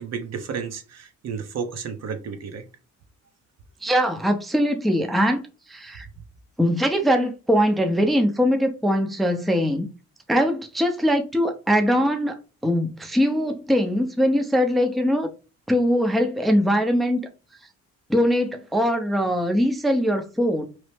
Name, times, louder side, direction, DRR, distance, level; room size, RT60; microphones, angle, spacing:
voice 1, 0.0-2.6, right 6 dB, 60° right, 0.8 m, -32 dB
voice 2, 3.8-5.4 5.7-6.1 6.6-9.9 10.3-12.4 12.6-15.3 15.7-17.2 18.1-20.7, equal, ahead, 0.5 m, -21 dB
3.0 x 2.0 x 3.2 m
cardioid pair, 90°, 30 cm